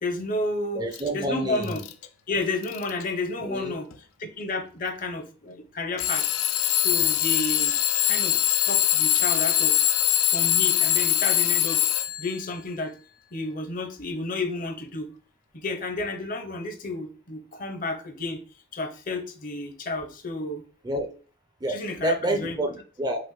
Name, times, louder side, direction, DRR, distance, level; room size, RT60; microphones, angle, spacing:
voice 1, 0.0-0.8 1.1-1.8 2.3-3.9 4.4-6.2 6.8-7.7 8.1-8.3 8.6-9.7 10.3-11.8 12.2-12.9 13.3-15.1 15.6-18.4 18.7-20.6 21.7-22.6, left 2 dB, 40° left, 6 dB, 0.7 m, -31 dB
voice 2, 0.7-1.8 3.4-3.8 20.8-21.1 21.6-23.3, right 1 dB, 20° right, 5 dB, 0.4 m, -29 dB
Alarm / Clock, 0.9-1.1 1.6-2.1 2.6-3.0 3.9-4.0 6.0-12.4, left 13 dB, 75° left, 0.4 m, -23 dB
5.8 x 2.5 x 3.1 m, 0.40 s
head